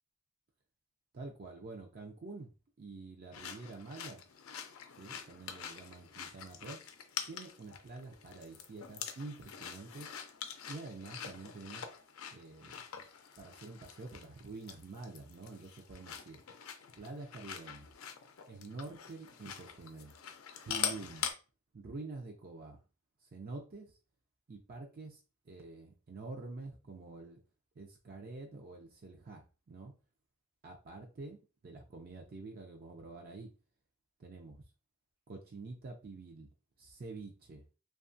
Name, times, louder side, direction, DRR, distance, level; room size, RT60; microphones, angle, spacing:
voice 1, 1.1-2.5 2.8-4.2 5.0-6.8 7.3-10.1 10.7-11.8 12.3-12.8 13.4-16.4 17.0-17.9 18.5-20.1 20.6-21.3 21.7-22.8 23.3-23.9 24.5-25.2 25.5-27.4 27.8-29.9 30.6-31.4 31.6-33.5 34.2-34.6 35.3-36.5 36.8-37.6, right 3 dB, 45° right, 2 dB, 0.5 m, -47 dB
sound 1, 3.3-21.3, left 8 dB, 90° left, 0.5 m, -44 dB
2.8 x 2.3 x 2.6 m, 0.33 s
head